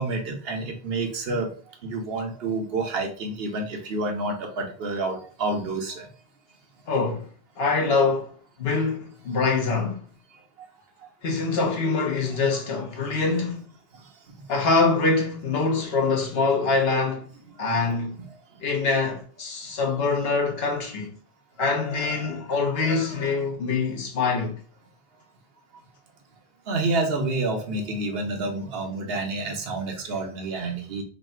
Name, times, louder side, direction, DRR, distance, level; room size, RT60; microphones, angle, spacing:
voice 1, 0.0-1.5 1.8-6.1 10.6-10.7 11.0-11.1 12.3-12.4 13.9-14.0 14.3-14.4 17.5-17.6 26.7-31.0, right 2 dB, 65° right, 1.0 m, -29 dB
voice 2, 6.9-7.2 7.6-8.3 8.6-10.0 11.2-13.6 14.5-17.2 17.6-18.2 18.6-21.1 21.6-24.6, left 4 dB, 65° left, 1.2 m, -24 dB
3.2 x 2.7 x 4.3 m
omnidirectional pair, 1.1 m